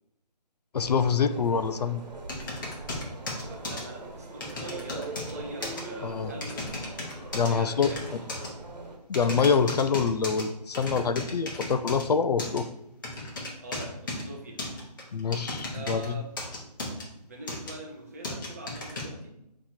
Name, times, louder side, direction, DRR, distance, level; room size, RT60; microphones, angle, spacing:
voice 1, 0.7-2.0 6.0-6.3 7.3-7.9 9.1-12.7 15.1-16.2, left 5 dB, 70° left, 10 dB, 0.4 m, -25 dB
sound 1, 0.8-9.0, right 2 dB, 75° right, 1.1 m, -41 dB
sound 2, 2.3-3.8 4.4-5.3 5.6-5.8 6.4-7.5 7.8-8.5 9.1-10.4 10.7-12.0 12.4-12.6 13.0-14.2 14.6-16.1 16.4-17.0 17.5-17.7 18.2-19.0, left 2 dB, 30° left, 0.9 m, -35 dB
voice 2, 3.4-8.5 13.6-14.6 15.7-16.3 17.3-19.4, right 2 dB, 25° right, -1 dB, 0.6 m, -43 dB
3.6 x 3.0 x 4.4 m, 0.80 s
figure-of-eight pair, 165°, 21 cm